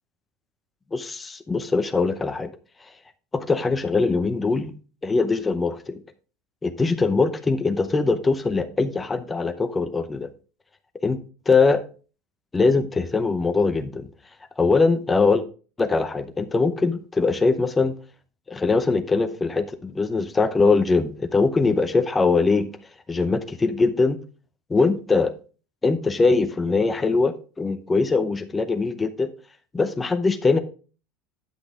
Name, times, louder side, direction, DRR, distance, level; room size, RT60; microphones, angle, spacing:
voice 1, 0.9-2.5 3.3-4.7 5.0-6.0 6.6-10.3 11.0-11.2 11.5-11.8 12.5-14.1 14.6-15.4 15.8-17.9 18.5-22.7 23.1-24.2 24.7-25.3 25.8-29.3 29.7-30.6, left 4 dB, 10° left, 9 dB, 0.7 m, -22 dB
10.0 x 5.9 x 3.6 m, 0.37 s
cardioid pair, 170°, 0 cm